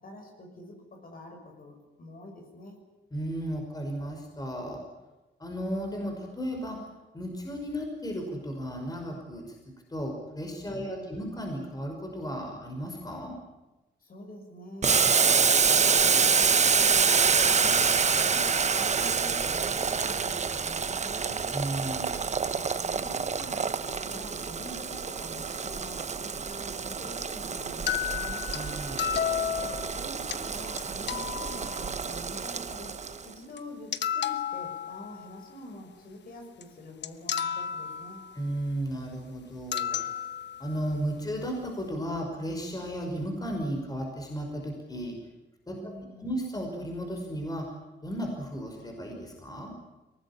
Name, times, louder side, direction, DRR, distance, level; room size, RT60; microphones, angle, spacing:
voice 1, 0.0-2.8 10.6-11.2 14.0-21.4 22.2-28.4 29.5-32.9 33.2-38.2 45.7-46.3, left 1 dB, 50° left, 3 dB, 6.4 m, -46 dB
voice 2, 3.1-4.8 5.4-6.8 7.1-9.6 9.9-13.3 21.5-22.2 28.5-29.1 38.3-40.0 40.6-45.2 45.7-45.8 46.2-47.6 48.0-49.7, equal, 20° left, 2 dB, 5.6 m, -34 dB
Boiling, 14.8-33.2, right 5 dB, 35° right, 1.1 m, -27 dB
sound 1, 27.9-30.4 30.8-30.9 31.1-32.2 33.6-33.7 33.9-35.4 36.6-36.7 37.0-38.4 39.7-40.8, left 9 dB, 65° left, 1.1 m, -32 dB
23.0 x 19.0 x 10.0 m, 1.0 s
wide cardioid pair, 140°, 19 cm